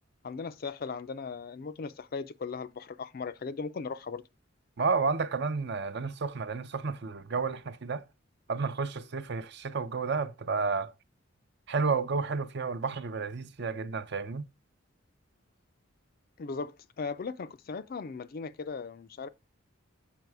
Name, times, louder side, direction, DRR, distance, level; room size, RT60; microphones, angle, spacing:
voice 1, 0.2-4.2 16.4-19.3, left 4 dB, 45° left, 0.4 m, -38 dB
voice 2, 4.8-8.0 8.5-10.9 11.7-14.4, right 4 dB, 55° right, 0.6 m, -31 dB
6.7 x 4.7 x 4.7 m
head